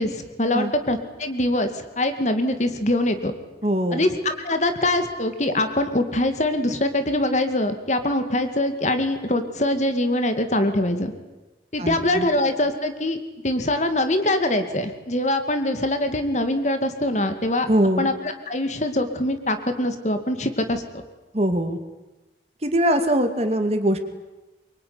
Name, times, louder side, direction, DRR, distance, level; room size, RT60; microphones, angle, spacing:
voice 1, 0.0-3.3 3.9-11.1 11.7-13.2 13.4-17.7 18.0-20.8, left 1 dB, 40° left, 8 dB, 2.3 m, -23 dB
voice 2, 3.6-4.1 11.8-12.3 17.7-18.1 21.3-21.8 22.6-24.0, right 1 dB, 35° right, 7 dB, 2.5 m, -22 dB
24.0 x 24.0 x 9.8 m, 1.1 s
head